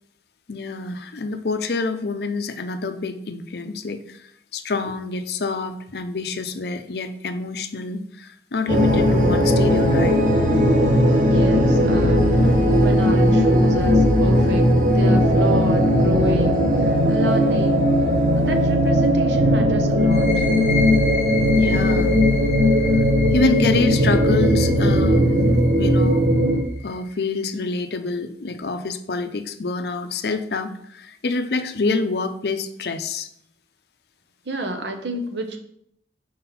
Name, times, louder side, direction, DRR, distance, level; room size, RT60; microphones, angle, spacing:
voice 1, 0.5-10.2 17.2-17.4 21.5-22.2 23.0-23.1 23.3-26.3 26.8-33.3, left 3 dB, 60° left, 8 dB, 0.5 m, -27 dB
sound 1, 8.7-26.6, equal, 45° right, 0.9 m, -18 dB
voice 2, 11.2-17.9 18.4-20.5 34.5-35.6, equal, 80° right, 5 dB, 0.9 m, -29 dB
sound 2, 20.0-27.4, left 3 dB, 35° left, 1.2 m, -32 dB
4.6 x 4.2 x 5.6 m, 0.72 s
head